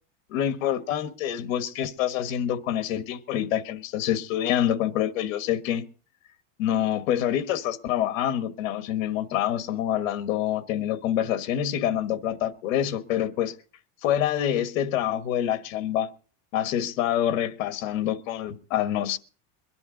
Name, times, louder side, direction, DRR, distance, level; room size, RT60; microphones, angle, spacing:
voice 1, 0.3-5.9 6.6-13.5 14.0-16.1 16.5-19.2, left 11 dB, 80° left, 1.5 m, -26 dB
23.0 x 10.5 x 3.9 m
supercardioid pair, 150°, 40 cm